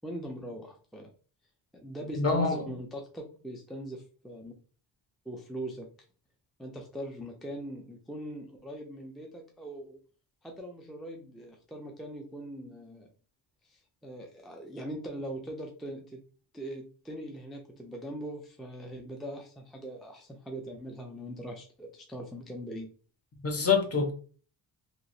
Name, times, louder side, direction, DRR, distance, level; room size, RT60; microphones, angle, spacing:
voice 1, 0.0-1.1 1.7-4.5 5.3-5.9 6.6-10.0 10.4-13.1 13.7-16.2 16.5-22.9, right 1 dB, ahead, 0.4 m, -41 dB
voice 2, 2.1-2.6 23.4-24.1, left 4 dB, 30° left, 0.7 m, -25 dB
3.0 x 2.5 x 2.6 m
cardioid pair, 105°, 49 cm